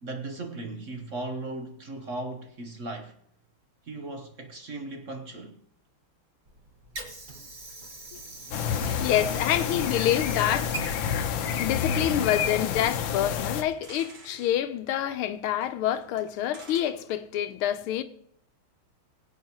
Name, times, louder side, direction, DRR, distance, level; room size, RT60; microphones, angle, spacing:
voice 1, 0.0-3.2 3.8-5.6, right 2 dB, 50° right, 1.0 m, -37 dB
Water / Sink (filling or washing), 6.4-12.5, right 3 dB, 25° right, 1.2 m, -43 dB
sound 1, 8.4-8.5 8.7-8.8 9.0-9.1 9.5-9.6 9.8-9.9 10.4-11.5 12.4-12.5 12.8-12.9 13.4-14.5 15.6-15.7 16.0-16.8, right 3 dB, 85° right, 3.3 m, -49 dB
sound 2, 8.5-13.6, left 7 dB, 70° left, 1.6 m, -29 dB
voice 2, 8.8-10.7 11.5-18.0, left 11 dB, 90° left, 1.6 m, -27 dB
22.0 x 8.4 x 2.9 m
omnidirectional pair, 2.3 m